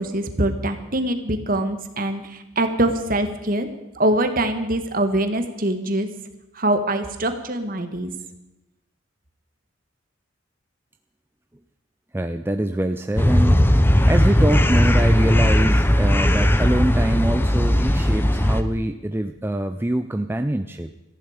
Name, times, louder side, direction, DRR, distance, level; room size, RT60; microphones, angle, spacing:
voice 1, 0.0-3.7 4.0-6.1 6.5-8.1, right 1 dB, 45° right, 8 dB, 1.6 m, -23 dB
voice 2, 12.1-13.6 14.1-20.9, right 1 dB, 10° right, 8 dB, 0.5 m, -24 dB
sound 1, 13.2-18.6, equal, 10° left, 0.8 m, -17 dB
18.5 x 14.5 x 5.0 m, 0.97 s
head